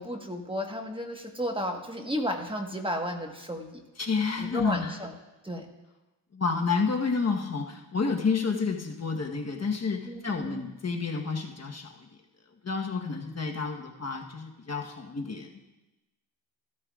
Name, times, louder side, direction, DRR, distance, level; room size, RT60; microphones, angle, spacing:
voice 1, 0.0-3.8 4.4-5.1 5.4-5.7 10.0-10.7, equal, 10° right, 3 dB, 1.4 m, -33 dB
voice 2, 4.0-4.9 6.3-12.1 12.6-15.5, left 4 dB, 35° left, 2 dB, 1.2 m, -30 dB
14.5 x 13.0 x 2.4 m, 1.1 s
cardioid pair, 70°, 42 cm